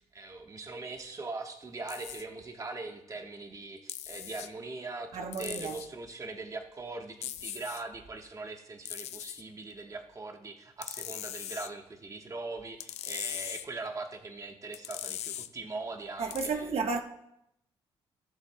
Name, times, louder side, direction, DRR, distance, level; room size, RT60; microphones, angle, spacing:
voice 1, 0.0-16.7, right 3 dB, 30° right, 1.2 m, -41 dB
sound 1, 1.9-2.2 3.9-4.5 5.3-5.9 7.2-7.8 8.9-9.4 10.8-11.7 12.8-13.7 14.7-15.5 16.3-16.5, left 12 dB, 85° left, 0.5 m, -39 dB
voice 2, 5.1-5.7 16.2-17.0, right 4 dB, 65° right, 1.1 m, -32 dB
16.5 x 7.2 x 2.2 m
cardioid pair, 90°, 11 cm